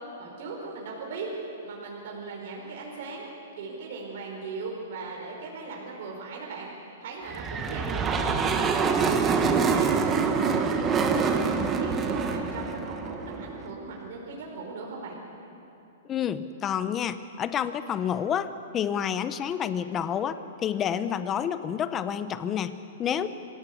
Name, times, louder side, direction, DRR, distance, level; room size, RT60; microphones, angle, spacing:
voice 1, 0.2-1.3 1.6-3.3 3.6-6.7 7.0-8.4 8.8-15.2, right 4 dB, 55° right, -2 dB, 4.7 m, -38 dB
sound 1, 7.3-13.7, right 5 dB, 15° right, 1.2 m, -25 dB
voice 2, 16.0-23.3, left 8 dB, 15° left, 12 dB, 0.7 m, -29 dB
25.5 x 17.0 x 8.3 m, 2.9 s
hypercardioid pair, 165°, 0 cm